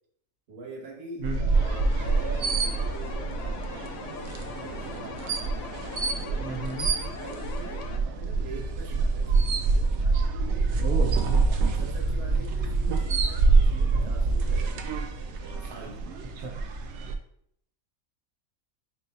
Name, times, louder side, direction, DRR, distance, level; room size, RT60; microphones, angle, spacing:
voice 1, 0.5-3.7 3.9-5.4 6.2-6.5 6.8-9.6 11.6-14.8 15.4-16.2, right 3 dB, 50° right, 0 dB, 1.2 m, -44 dB
sound 1, 1.2-17.1, right 3 dB, 65° right, 0.8 m, -26 dB
sound 2, 1.5-8.0, left 5 dB, 70° left, 0.8 m, -40 dB
voice 2, 6.4-6.9 10.8-11.2 16.4-16.5, right 3 dB, 85° right, 2 dB, 1.1 m, -33 dB
5.2 x 2.1 x 3.9 m, 0.68 s
omnidirectional pair, 1.5 m